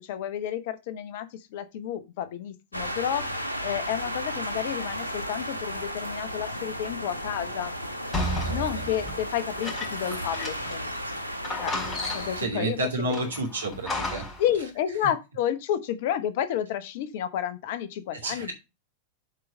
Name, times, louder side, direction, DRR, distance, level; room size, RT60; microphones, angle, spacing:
voice 1, 0.0-3.3 3.6-7.7 8.5-10.8 11.6-11.7 12.1-13.2 14.4-18.5, left 10 dB, 50° left, 1.0 m, -31 dB
sound 1, 2.7-12.5, equal, 85° left, 1.1 m, -34 dB
sound 2, 8.1-10.9 11.1-11.2 11.4-12.5 13.1-14.5, left 1 dB, 20° left, 4.2 m, -33 dB
voice 2, 8.4-8.9 12.4-14.2 18.2-18.5, right 2 dB, 70° right, 2.7 m, -30 dB
8.1 x 4.7 x 5.2 m
figure-of-eight pair, 90°, 0 cm